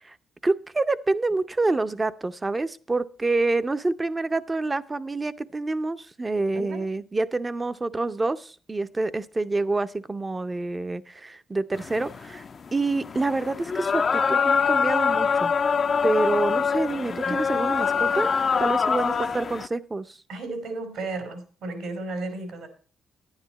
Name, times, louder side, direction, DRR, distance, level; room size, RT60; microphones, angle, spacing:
voice 1, 0.4-12.4 12.7-15.5 16.0-18.3 18.6-20.2, right 3 dB, 20° right, 14 dB, 0.6 m, -27 dB
sound 1, 11.7-19.7, left 6 dB, 45° left, 0.5 m, -24 dB
voice 2, 17.1-17.4 19.0-19.4 20.3-22.7, right 2 dB, 75° right, 7 dB, 3.0 m, -34 dB
10.5 x 9.7 x 4.0 m, 0.39 s
cardioid pair, 90°, 0 cm